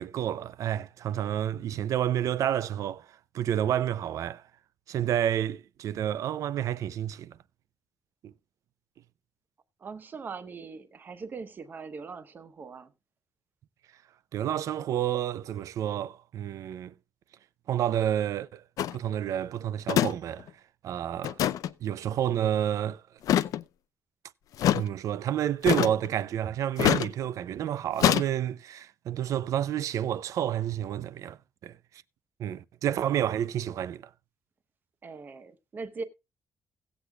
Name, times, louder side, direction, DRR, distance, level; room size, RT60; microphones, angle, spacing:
voice 1, 0.0-3.1 3.3-4.4 4.9-7.4 8.2-8.3 14.3-16.9 17.7-18.6 18.9-20.5 20.8-21.4 21.8-23.0 24.7-31.8 32.4-34.1, right 10 dB, 65° right, 0.5 m, -29 dB
voice 2, 9.8-12.9 35.0-36.0, right 4 dB, 30° right, 0.9 m, -41 dB
sound 1, 18.8-19.0 19.9-20.1 20.4-20.5 21.2-21.7 23.2-23.6 24.6-24.8 25.6-26.1 26.8-27.1 28.0-28.3, left 11 dB, 75° left, 0.5 m, -24 dB
17.5 x 8.1 x 2.3 m
wide cardioid pair, 175°, 6 cm